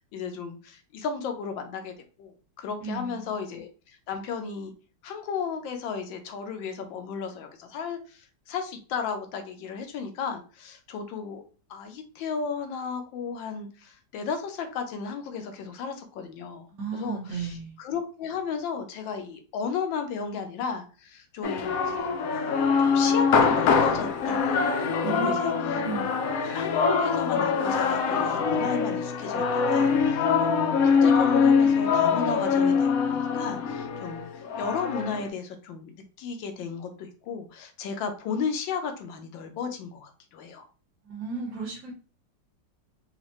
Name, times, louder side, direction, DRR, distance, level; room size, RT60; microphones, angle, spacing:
voice 1, 0.1-3.7 4.1-4.7 5.0-8.2 8.5-11.4 11.7-16.7 16.9-22.1 22.8-24.7 25.1-25.8 26.5-34.2 34.6-35.9 36.2-40.7, left 6 dB, 90° left, 6 dB, 1.4 m, -34 dB
voice 2, 2.8-3.3 16.7-17.8 25.0-26.1 41.0-41.9, right 4 dB, 60° right, 1 dB, 1.2 m, -34 dB
sound 1, 21.4-35.3, left 5 dB, 70° left, 0.8 m, -24 dB
4.2 x 2.4 x 2.9 m, 0.36 s
omnidirectional pair, 2.0 m